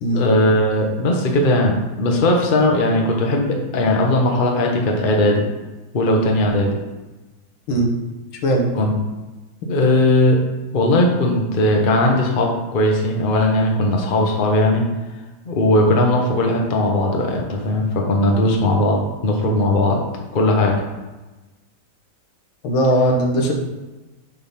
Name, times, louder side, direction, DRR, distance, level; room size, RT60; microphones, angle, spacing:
voice 1, 0.1-5.4 5.9-6.8 8.7-8.9 9.7-10.4 10.7-14.8 15.5-20.0 20.3-20.8, left 1 dB, 35° left, 1 dB, 0.9 m, -18 dB
voice 2, 22.6-23.5, right 1 dB, 85° left, 1 dB, 2.0 m, -18 dB
7.9 x 3.7 x 5.7 m, 1.1 s
omnidirectional pair, 2.2 m